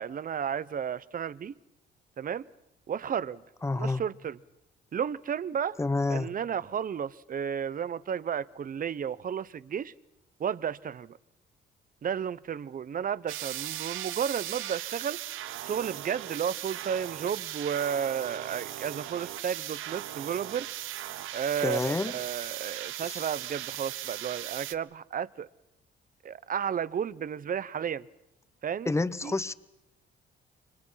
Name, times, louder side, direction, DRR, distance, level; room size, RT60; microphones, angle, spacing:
voice 1, 0.0-1.5 2.2-2.5 2.9-3.4 3.7-4.4 4.9-5.8 6.1-9.9 10.4-11.2 12.0-15.2 15.6-20.7 21.3-25.5 26.2-28.1 28.6-28.9 29.2-29.3, right 8 dB, 45° right, 0.9 m, -32 dB
voice 2, 3.6-4.0 5.8-6.3 21.6-22.1 23.0-23.3 28.9-29.5, left 3 dB, 15° left, 1.0 m, -28 dB
sound 1, 13.3-24.7, right 13 dB, 85° right, 1.1 m, -38 dB
29.5 x 25.0 x 5.8 m
cardioid pair, 90°, 20 cm